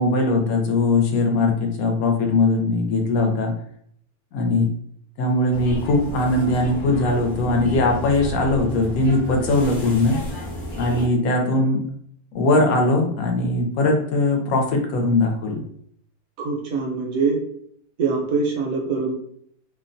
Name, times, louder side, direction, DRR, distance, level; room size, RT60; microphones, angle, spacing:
voice 1, 0.0-3.5 4.3-4.7 5.2-10.2 10.8-11.8 12.3-15.6, left 2 dB, 70° left, 2 dB, 1.0 m, -20 dB
sound 1, 5.5-11.1, equal, 50° left, 0.6 m, -32 dB
voice 2, 16.4-17.4 18.0-19.1, right 4 dB, 70° right, 0 dB, 0.9 m, -24 dB
2.7 x 2.1 x 2.5 m, 0.66 s
omnidirectional pair, 1.7 m